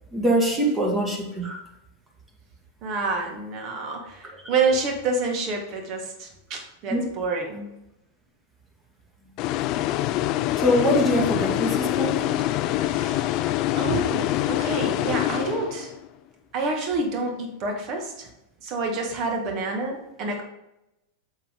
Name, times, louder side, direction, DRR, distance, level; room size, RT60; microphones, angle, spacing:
voice 1, 0.1-1.6 4.4-4.5 6.9-7.1 10.6-12.3, equal, 15° right, 0 dB, 2.0 m, -23 dB
voice 2, 2.8-7.7 11.6-11.8 12.4-12.5 12.8-13.3 13.8-15.9 16.5-18.3 18.6-20.4, right 3 dB, 40° right, 2 dB, 1.9 m, -28 dB
sound 1, 9.4-16.1, left 14 dB, 40° left, 0.4 m, -25 dB
8.0 x 7.2 x 3.7 m, 0.90 s
figure-of-eight pair, 90°, 0 cm